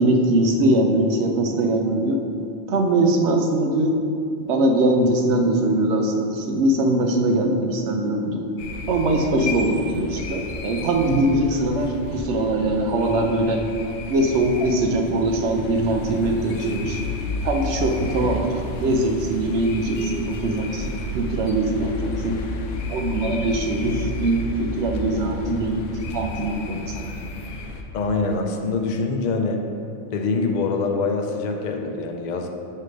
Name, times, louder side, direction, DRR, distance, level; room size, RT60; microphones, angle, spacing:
voice 1, 0.0-2.2 2.7-3.9 4.5-8.4 8.9-13.6 14.1-17.0 17.4-18.5 18.8-22.4 22.9-25.8 26.1-27.2, right 1 dB, 70° right, 3 dB, 0.9 m, -22 dB
sound 1, 8.6-27.8, left 1 dB, 75° left, 0.9 m, -32 dB
voice 2, 27.9-29.6 30.1-32.5, left 3 dB, 55° left, 3 dB, 0.5 m, -24 dB
6.5 x 3.2 x 5.1 m, 2.6 s
omnidirectional pair, 1.2 m